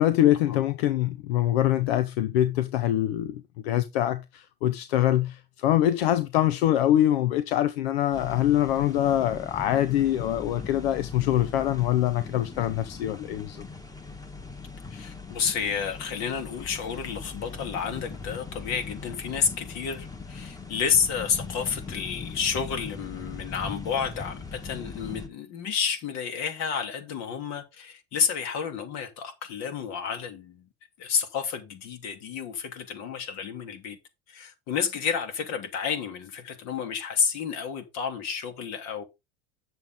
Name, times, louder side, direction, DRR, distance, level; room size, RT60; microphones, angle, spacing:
voice 1, 0.0-13.6, left 12 dB, 90° left, 0.8 m, -24 dB
sound 1, 8.1-25.3, left 4 dB, 10° left, 1.7 m, -40 dB
voice 2, 14.9-30.6 31.0-34.0 34.3-39.0, left 7 dB, 60° left, 3.0 m, -30 dB
8.8 x 7.3 x 3.9 m
supercardioid pair, 105°, 30 cm